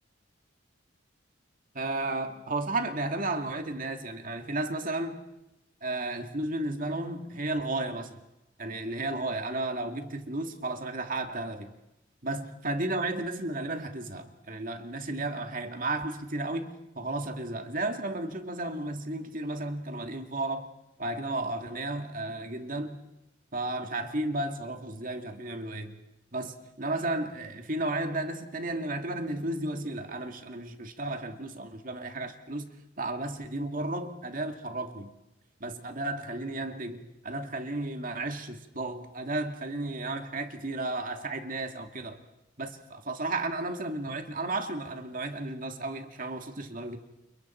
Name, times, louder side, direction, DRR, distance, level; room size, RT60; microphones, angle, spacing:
voice 1, 1.7-5.2 5.8-8.2 8.6-11.7 12.2-20.7 21.0-23.0 23.5-26.0 26.3-32.7 33.0-35.1 35.6-42.2 42.6-47.0, right 2 dB, 45° right, 2.2 m, -33 dB
29.5 x 29.0 x 4.5 m
head